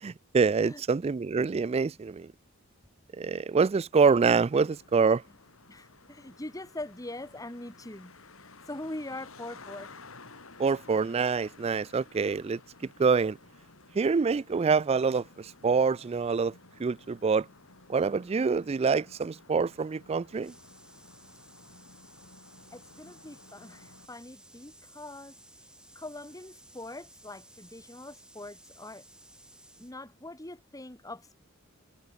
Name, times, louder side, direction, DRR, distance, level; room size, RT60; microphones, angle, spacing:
voice 1, 0.0-2.3 3.2-5.2 10.6-12.6 13.0-13.4 14.0-16.5 16.8-17.5 17.9-20.5, right 5 dB, 30° right, 0.3 m, -26 dB
Traffic noise roadway noise, 4.1-24.1, left 3 dB, 80° left, 4.7 m, -54 dB
voice 2, 5.7-8.1 8.7-9.9 22.7-25.3 26.0-29.0 29.8-31.4, left 1 dB, 15° left, 2.1 m, -42 dB
sound 1, 20.4-29.9, right 1 dB, 5° right, 5.8 m, -56 dB
head